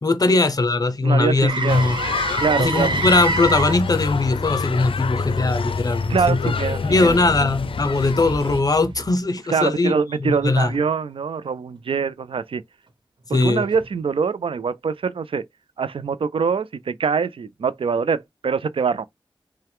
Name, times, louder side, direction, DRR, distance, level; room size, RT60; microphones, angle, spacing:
voice 1, 0.0-2.0 2.6-6.5 6.8-9.9 10.2-10.7 13.3-13.6, left 3 dB, 45° left, 0.8 m, -20 dB
voice 2, 1.0-1.8 2.4-3.0 6.1-7.5 9.5-12.6 13.3-15.4 15.8-19.1, right 5 dB, 90° right, 0.4 m, -24 dB
Motor vehicle (road), 1.5-9.4 13.7-13.9, right 3 dB, 65° right, 1.1 m, -30 dB
sound 1, 1.7-8.6, left 5 dB, 85° left, 0.4 m, -27 dB
5.6 x 2.2 x 3.5 m
wide cardioid pair, 85°, 9 cm